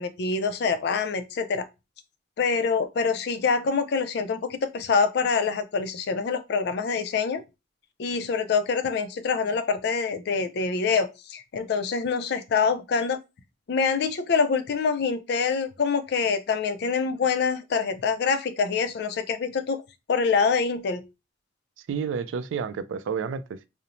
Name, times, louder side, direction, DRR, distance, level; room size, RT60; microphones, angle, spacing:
voice 1, 0.0-1.7 2.4-7.4 8.0-13.2 13.7-19.8 20.1-21.0, left 5 dB, 60° left, 0.3 m, -25 dB
voice 2, 21.9-23.7, right 6 dB, 85° right, 0.3 m, -30 dB
2.5 x 2.0 x 2.9 m
head